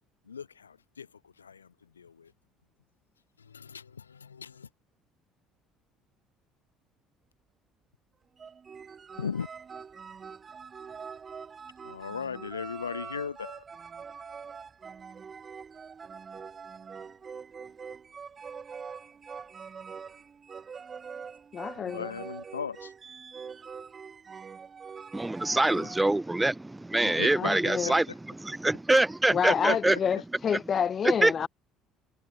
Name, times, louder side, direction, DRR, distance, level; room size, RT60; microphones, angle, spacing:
voice 1, 0.3-1.1 1.4-1.7 2.0-2.3 3.5-4.7 9.2-9.5 11.8-13.6 21.7-22.9 27.2-27.5 27.8-27.9 29.7-29.8, left 6 dB, 90° left, 1.4 m, -37 dB
sound 1, 8.4-26.1, right 6 dB, 35° right, 1.8 m, -44 dB
voice 2, 21.5-22.1 25.8-25.9 27.3-27.9 29.3-31.5, left 7 dB, 40° left, 0.5 m, -29 dB
voice 3, 25.1-30.0 30.5-30.6 31.0-31.5, right 2 dB, 10° right, 2.4 m, -25 dB
figure-of-eight pair, 55°, 0 cm